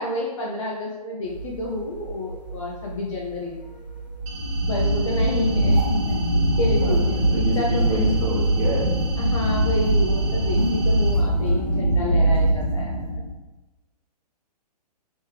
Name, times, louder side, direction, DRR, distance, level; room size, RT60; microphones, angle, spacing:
voice 1, 0.0-3.5 4.7-8.0 9.2-13.2, left 2 dB, 50° left, -2 dB, 0.6 m, -29 dB
sound 1, 1.2-11.8, right 2 dB, 85° left, 0.7 m, -38 dB
sound 2, 4.2-13.3, right 1 dB, 70° right, 1.0 m, -22 dB
sound 3, 4.3-11.1, right 2 dB, 20° right, 0.5 m, -40 dB
voice 2, 4.7-5.1 6.8-8.9, equal, 40° right, -5 dB, 1.4 m, -28 dB
3.2 x 3.1 x 3.2 m, 1.1 s
figure-of-eight pair, 120°, 21 cm